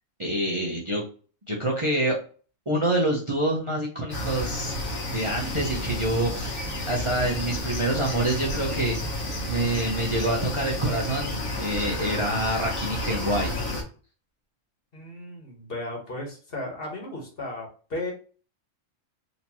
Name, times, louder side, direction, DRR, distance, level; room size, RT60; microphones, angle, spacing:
voice 1, 0.2-1.0 1.5-2.2 2.7-4.7 5.1-9.2 9.4-13.5, right 1 dB, 30° right, -2 dB, 0.7 m, -26 dB
sound 1, 4.1-13.8, left 1 dB, 85° left, 1.5 m, -31 dB
voice 2, 14.9-18.1, left 2 dB, 50° left, 0 dB, 1.4 m, -35 dB
4.1 x 2.9 x 2.9 m, 0.39 s
omnidirectional pair, 1.4 m